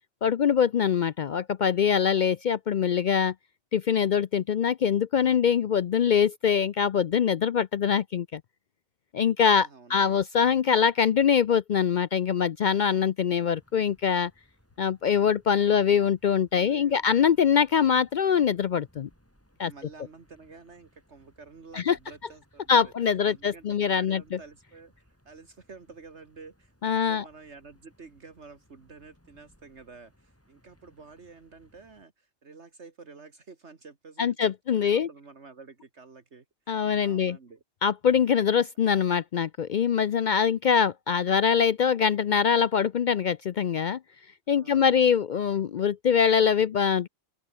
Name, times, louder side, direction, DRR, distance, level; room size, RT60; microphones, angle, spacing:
voice 1, 0.2-3.3 3.7-8.4 9.1-14.3 14.8-19.1 19.6-19.7 21.7-22.0 22.7-24.2 26.8-27.2 34.2-35.1 36.7-37.4 37.8-44.0 44.5-47.1, left 7 dB, 60° left, 0.5 m, -23 dB
voice 2, 9.4-10.2 15.7-16.1 16.5-17.1 17.7-18.0 19.6-22.9 23.3-37.6 38.2-38.4 44.5-45.2, right 4 dB, 65° right, 2.3 m, -50 dB
sound 1, 13.5-32.1, equal, 10° left, 7.5 m, -64 dB
open air
omnidirectional pair, 1.2 m